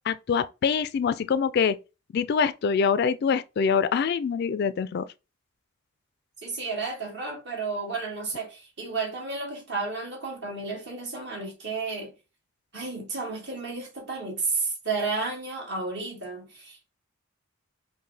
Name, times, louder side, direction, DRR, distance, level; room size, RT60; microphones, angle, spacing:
voice 1, 0.1-1.8 2.1-5.0, left 6 dB, 50° left, 0.3 m, -24 dB
voice 2, 6.4-12.1 12.7-16.9, right 3 dB, 60° right, 1.8 m, -32 dB
5.4 x 2.2 x 3.3 m
head